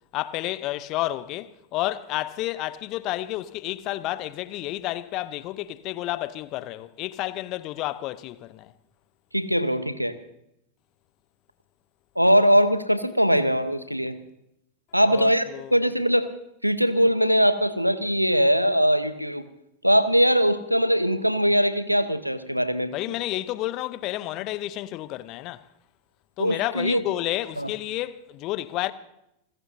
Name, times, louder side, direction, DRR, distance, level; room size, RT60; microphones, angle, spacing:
voice 1, 0.1-8.7 15.1-15.7 22.9-25.6 26.4-28.9, left 16 dB, 40° left, 0.8 m, -30 dB
voice 2, 9.3-10.2 12.2-14.2 14.9-15.4 15.7-16.3 16.6-19.4 19.8-22.9 26.4-27.0 27.6-27.7, equal, 90° right, 0.9 m, -21 dB
29.5 x 15.5 x 2.7 m
figure-of-eight pair, 90°, 0 cm